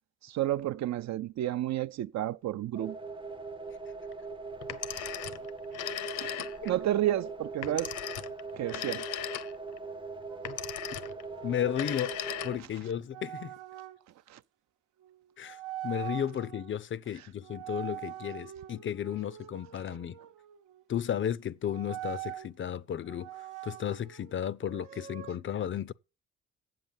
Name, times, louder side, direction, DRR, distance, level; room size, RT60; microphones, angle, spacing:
voice 1, 0.2-3.0 4.9-5.0 6.2-7.9 8.6-9.0 14.3-14.4, right 13 dB, 65° right, 0.5 m, -31 dB
sound 1, 2.7-12.6, right 4 dB, 15° right, 0.5 m, -41 dB
Telephone, 4.6-6.8 7.6-9.8 10.4-11.2 11.7-12.8, left 11 dB, 85° left, 0.9 m, -38 dB
sound 2, 10.3-14.0 15.0-15.2 15.4-16.8 17.4-20.8 21.7-22.5 23.0-25.4, right 13 dB, 85° right, 1.0 m, -44 dB
voice 2, 11.4-12.2 12.4-13.5 15.4-20.2 20.9-23.3 23.6-25.9, left 9 dB, 40° left, 0.5 m, -34 dB
7.9 x 7.6 x 7.2 m
cardioid pair, 90°, 30 cm